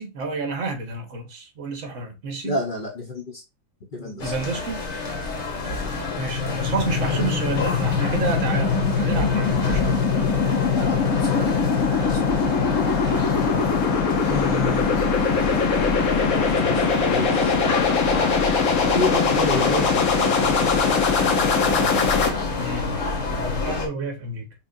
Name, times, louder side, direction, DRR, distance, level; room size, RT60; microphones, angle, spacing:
voice 1, 0.0-2.6 4.2-4.8 5.8-10.0 13.1-13.5 22.6-23.0 23.3-24.5, right 3 dB, 65° right, 1.4 m, -30 dB
voice 2, 2.4-3.4 3.9-4.3 5.8-5.9 8.6-8.7 10.8-11.6 11.9-12.4 14.3-14.9 16.1-17.6 18.9-20.2, left 2 dB, 45° left, 1.0 m, -29 dB
sound 1, 4.2-23.9, left 3 dB, 65° left, 1.4 m, -28 dB
sound 2, 5.8-22.3, left 5 dB, 85° left, 1.3 m, -22 dB
5.4 x 2.4 x 2.5 m
omnidirectional pair, 1.4 m